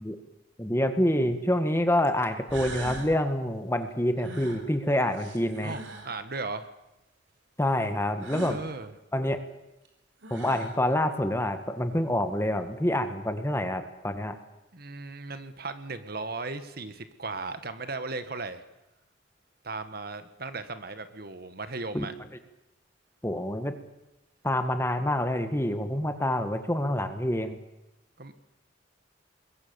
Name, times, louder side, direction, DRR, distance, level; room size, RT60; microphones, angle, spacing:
voice 1, 0.6-5.8 7.6-8.6 9.1-9.4 10.3-14.4 21.9-22.1 23.2-23.7 24.4-27.6, left 1 dB, 15° left, 8 dB, 1.8 m, -27 dB
sound 1, 1.0-1.1 2.0-2.1 2.5-3.1 4.2-6.2 8.2-8.6 9.8-9.9 10.2-10.8, right 2 dB, 80° right, 4.3 m, -41 dB
voice 2, 5.6-6.7 8.5-8.9 14.7-18.6 19.6-22.1 28.2-28.3, right 3 dB, 55° right, 10 dB, 1.6 m, -36 dB
25.5 x 22.0 x 7.1 m, 0.92 s
head